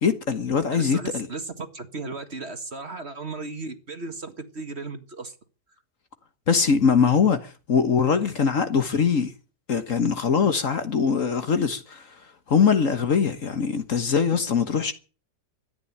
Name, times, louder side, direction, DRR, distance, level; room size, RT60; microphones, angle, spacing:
voice 1, 0.0-1.3 6.5-9.3 9.7-12.0 12.5-14.9, left 6 dB, 50° left, 1.6 m, -22 dB
voice 2, 0.7-5.4, right 3 dB, 40° right, 2.0 m, -35 dB
14.0 x 9.9 x 9.8 m
omnidirectional pair, 1.8 m